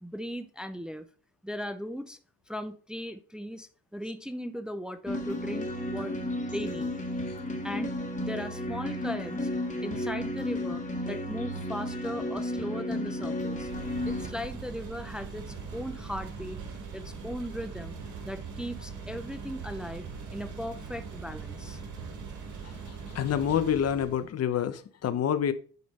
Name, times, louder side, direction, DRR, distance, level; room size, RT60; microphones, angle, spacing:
voice 1, 0.0-1.1 1.4-2.2 2.5-6.2 6.5-6.9 7.6-9.5 9.8-13.7 14.0-16.6 16.9-18.0 18.2-21.8, equal, 5° right, 0.6 m, -38 dB
sound 1, 5.1-14.3, left 1 dB, 25° left, 1.8 m, -33 dB
sound 2, 13.4-24.3, right 5 dB, 75° right, 2.1 m, -41 dB
voice 2, 23.1-25.5, left 9 dB, 55° left, 0.9 m, -27 dB
9.4 x 3.3 x 5.4 m
cardioid pair, 90°, 30 cm